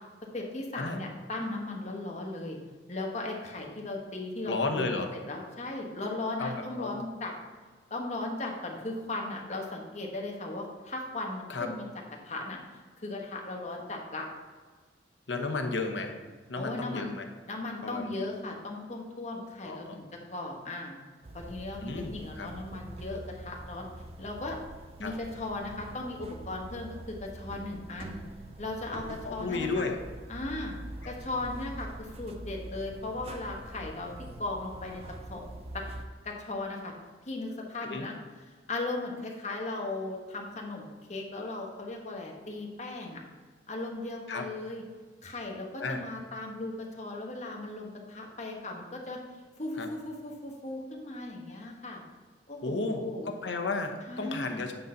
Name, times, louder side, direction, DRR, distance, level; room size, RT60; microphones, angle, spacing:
voice 1, 0.3-2.6 2.9-7.3 7.9-11.8 12.2-12.6 13.0-14.3 16.6-17.1 17.5-21.0 21.3-23.9 24.2-24.6 25.0-28.2 28.6-29.9 30.3-30.7 31.1-34.1 34.4-35.0 35.3-35.4 35.7-35.8 36.2-36.9 37.2-38.2 38.7-43.2 43.7-44.8 45.2-49.2 49.6-52.0 52.5-53.3 54.1-54.6, left 2 dB, 40° left, 0 dB, 1.3 m, -37 dB
voice 2, 4.5-5.1 6.4-7.0 11.5-11.7 15.3-16.2 16.5-17.3 17.8-18.1 19.6-20.0 21.8-22.5 25.0-25.1 29.2-30.0 31.0-31.1 37.8-38.1 44.3-44.5 45.8-46.0 49.8-49.9 52.6-54.7, left 3 dB, 85° left, 4 dB, 1.0 m, -33 dB
sound 1, 21.2-36.1, right 1 dB, 35° right, 0.5 m, -44 dB
9.2 x 4.0 x 5.7 m, 1.4 s
head